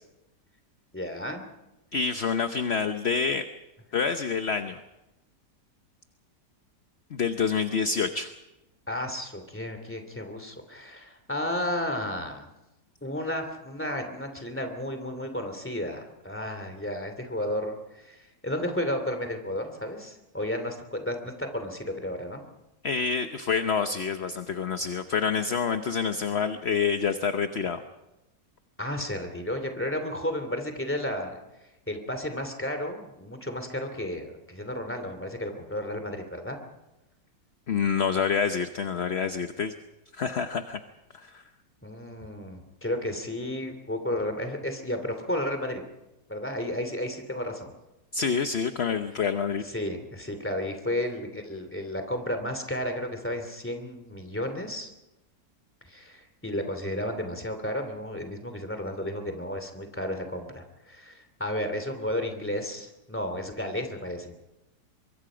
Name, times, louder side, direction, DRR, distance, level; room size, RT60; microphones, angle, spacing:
voice 1, 0.9-1.4 8.9-12.5 13.0-22.4 28.8-31.4 31.9-36.6 41.8-45.8 46.3-47.7 49.6-54.9 55.9-64.3, left 1 dB, 5° left, 6 dB, 2.6 m, -33 dB
voice 2, 1.9-3.4 3.9-4.8 7.1-8.3 22.8-27.8 37.7-39.7 40.1-40.8 41.1-41.4 48.1-49.6, left 6 dB, 45° left, 8 dB, 1.0 m, -27 dB
24.0 x 23.5 x 5.1 m, 0.95 s
omnidirectional pair, 1.9 m